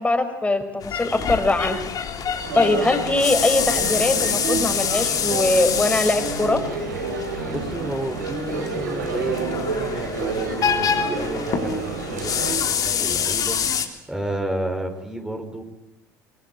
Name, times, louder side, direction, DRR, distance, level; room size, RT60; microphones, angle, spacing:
voice 1, 0.0-1.9 2.5-6.6, left 2 dB, 15° left, 7 dB, 5.3 m, -21 dB
sound 1, 0.8-13.9, left 7 dB, 40° left, 3.5 m, -26 dB
Male speech man speaking, 2.4-12.5, right 4 dB, 75° right, 4.2 m, -30 dB
voice 2, 7.5-15.6, right 1 dB, 5° right, 4 dB, 5.0 m, -31 dB
25.5 x 24.0 x 8.6 m, 0.88 s
figure-of-eight pair, 65°, 9 cm